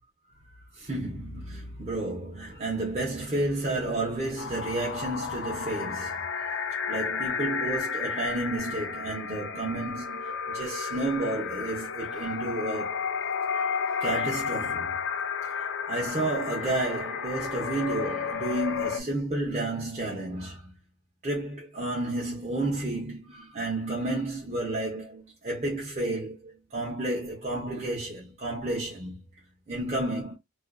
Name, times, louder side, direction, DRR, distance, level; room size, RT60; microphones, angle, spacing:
voice 1, 0.8-6.2 6.9-13.0 13.9-14.9 15.6-20.7 21.2-29.2 29.7-30.4, right 2 dB, 30° right, 0.7 m, -31 dB
sound 1, 4.4-19.0, left 6 dB, 55° left, 0.4 m, -32 dB
2.4 x 2.4 x 2.2 m
head